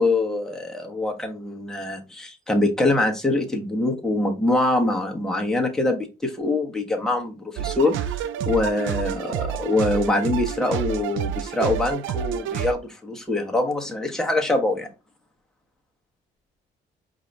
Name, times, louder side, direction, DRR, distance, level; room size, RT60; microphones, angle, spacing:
voice 1, 0.0-14.9, left 2 dB, ahead, 1.1 m, -24 dB
sound 1, 7.6-12.7, right 10 dB, 80° right, 0.4 m, -29 dB
4.6 x 2.7 x 3.3 m
cardioid pair, 90°, 20 cm